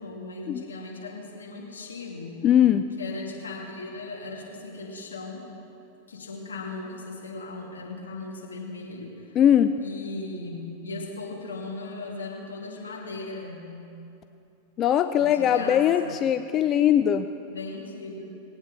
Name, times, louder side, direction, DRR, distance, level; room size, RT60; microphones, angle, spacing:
voice 1, 0.0-2.5 3.0-5.5 6.1-9.4 9.8-13.7 15.2-16.2 17.5-18.4, left 3 dB, 85° left, -2 dB, 2.5 m, -37 dB
voice 2, 2.4-2.8 9.4-9.7 14.8-17.3, left 10 dB, 35° left, 10 dB, 0.4 m, -20 dB
20.0 x 8.8 x 4.1 m, 2.8 s
hypercardioid pair, 100°, 0 cm